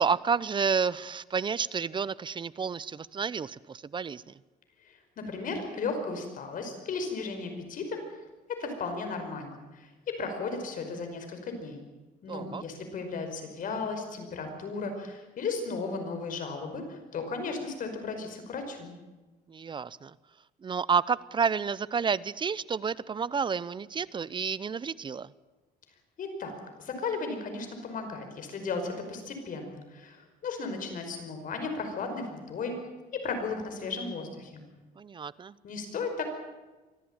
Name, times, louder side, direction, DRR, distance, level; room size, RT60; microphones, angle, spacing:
voice 1, 0.0-4.2 12.3-12.6 19.5-20.1 20.6-25.3 35.0-35.5, right 6 dB, 30° right, 20 dB, 0.7 m, -30 dB
voice 2, 4.8-8.0 8.5-11.8 12.2-18.9 26.2-32.8 33.1-34.6 35.6-36.2, left 4 dB, 55° left, 6 dB, 5.3 m, -35 dB
24.5 x 14.5 x 9.0 m, 1.2 s
cardioid pair, 110°, 17 cm